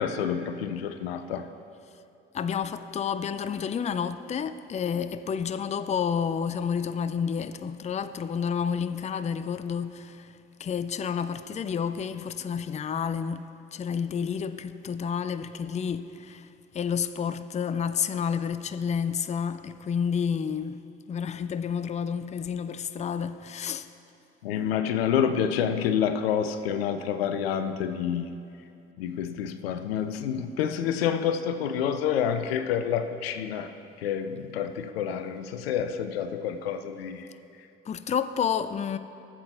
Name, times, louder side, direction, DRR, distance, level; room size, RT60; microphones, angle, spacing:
voice 1, 0.0-1.5 24.4-28.3 29.0-33.7 34.0-37.3, left 8 dB, 80° left, 0.5 m, -28 dB
voice 2, 2.3-10.3 10.6-16.5 16.7-20.8 21.1-23.9 37.9-39.0, left 7 dB, 25° left, 0.4 m, -30 dB
15.0 x 7.5 x 3.3 m
figure-of-eight pair, 45°, 30 cm